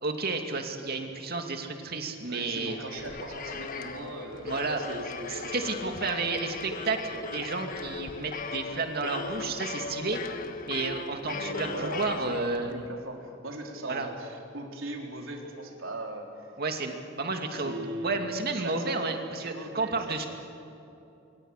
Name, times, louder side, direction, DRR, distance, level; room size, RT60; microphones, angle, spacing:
voice 1, 0.0-2.8 4.4-4.8 5.3-10.2 10.7-12.7 13.9-14.1 16.6-17.7 18.0-20.2, right 3 dB, 50° right, 4 dB, 2.5 m, -31 dB
voice 2, 2.3-5.5 11.3-16.5 17.5-18.2 18.5-18.9 19.3-20.3, right 1 dB, 85° right, 1 dB, 4.0 m, -39 dB
toy-guitar-playing, 2.4-12.9, left 4 dB, 45° left, 1.4 m, -38 dB
27.0 x 23.0 x 6.7 m, 2.8 s
head